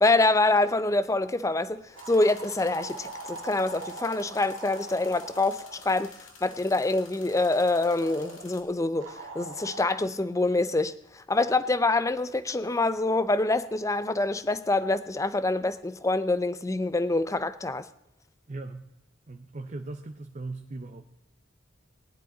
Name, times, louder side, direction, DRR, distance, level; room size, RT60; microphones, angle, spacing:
voice 1, 0.0-6.2 6.4-17.9, left 2 dB, 15° left, 0.5 m, -26 dB
sound 1, 2.0-8.6, left 5 dB, 70° left, 2.1 m, -51 dB
sound 2, 2.0-5.9 7.3-8.5 9.0-9.9, right 3 dB, 75° right, 1.7 m, -42 dB
voice 2, 18.5-18.9 19.3-21.1, right 2 dB, 35° right, 0.6 m, -39 dB
18.5 x 11.0 x 3.9 m
head